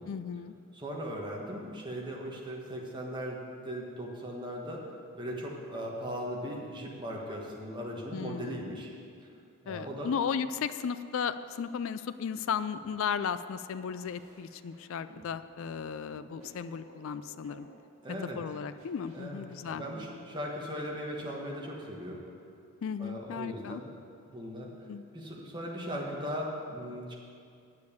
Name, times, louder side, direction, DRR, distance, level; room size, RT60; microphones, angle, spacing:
voice 1, 0.1-0.5 8.1-8.6 9.7-17.7 18.4-19.8 22.8-23.8 24.9-25.0, left 7 dB, 60° left, 12 dB, 0.3 m, -35 dB
voice 2, 0.7-4.8 5.2-8.9 9.6-10.1 18.0-18.4 19.1-22.2 23.0-23.9 24.3-24.7 25.1-27.1, equal, 20° right, -2 dB, 1.4 m, -38 dB
sound 1, 12.7-12.9 13.7-15.3 16.1-17.6 18.5-20.0 20.9-22.2, right 1 dB, 65° right, 2.0 m, -55 dB
8.6 x 6.5 x 8.4 m, 2.4 s
head